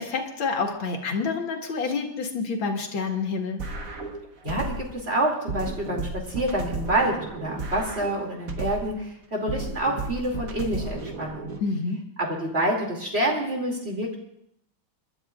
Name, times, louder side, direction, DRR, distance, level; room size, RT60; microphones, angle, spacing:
voice 1, 0.0-3.6 11.6-12.0, left 4 dB, 75° left, 2 dB, 2.5 m, -28 dB
sound 1, 3.6-5.0 5.5-9.0 9.5-11.6, right 3 dB, 50° right, 1.5 m, -34 dB
voice 2, 4.4-11.5 12.2-14.1, right 1 dB, 30° right, -1 dB, 2.8 m, -27 dB
29.0 x 12.0 x 2.4 m, 0.75 s
omnidirectional pair, 2.2 m